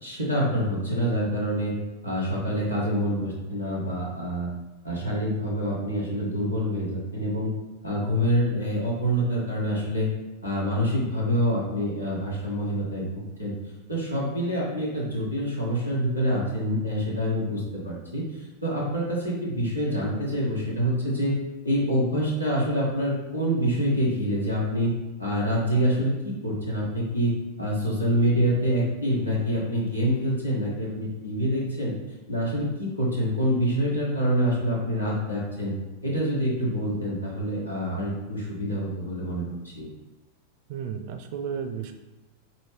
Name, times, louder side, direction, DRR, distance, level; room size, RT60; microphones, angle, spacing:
voice 1, 0.0-1.7 2.0-4.5 4.8-7.5 7.8-10.1 10.4-13.5 13.9-21.4 21.6-24.9 25.2-27.3 27.6-31.9 32.3-35.7 36.0-39.9, equal, 85° left, -5 dB, 1.2 m, -26 dB
voice 2, 40.7-41.9, right 7 dB, 50° right, 7 dB, 0.4 m, -33 dB
4.1 x 3.1 x 3.2 m, 1.1 s
figure-of-eight pair, 90°, 0 cm